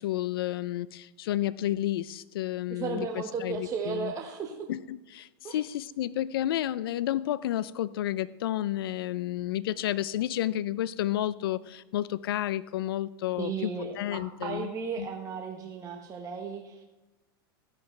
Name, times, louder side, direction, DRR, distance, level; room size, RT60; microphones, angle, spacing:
voice 1, 0.0-4.1 4.7-14.7 15.0-15.1, left 13 dB, 80° left, 18 dB, 0.4 m, -31 dB
voice 2, 2.7-4.7 5.4-5.6 13.4-16.8, right 5 dB, 25° right, 2 dB, 1.1 m, -35 dB
13.5 x 10.5 x 3.2 m, 1.1 s
hypercardioid pair, 120°, 12 cm